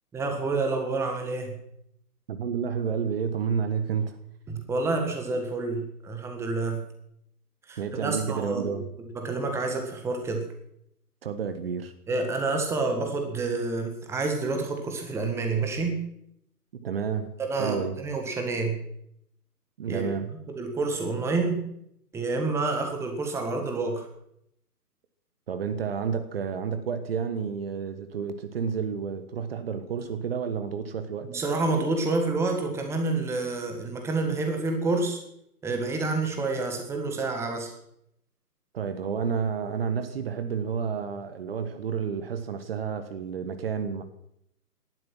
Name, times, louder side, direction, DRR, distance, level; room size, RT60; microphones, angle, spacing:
voice 1, 0.1-1.5 4.5-6.8 7.7-8.8 9.1-10.4 12.1-16.0 17.4-18.8 19.9-20.1 20.5-21.6 22.1-24.1 31.2-35.2 35.6-37.7, right 3 dB, 5° right, 4 dB, 1.7 m, -28 dB
voice 2, 2.3-4.2 7.8-8.9 11.2-11.9 16.8-18.0 19.8-20.3 25.5-31.3 38.7-44.0, right 6 dB, 40° right, 10 dB, 1.4 m, -30 dB
17.5 x 12.5 x 6.1 m, 0.73 s
figure-of-eight pair, 135°, 47 cm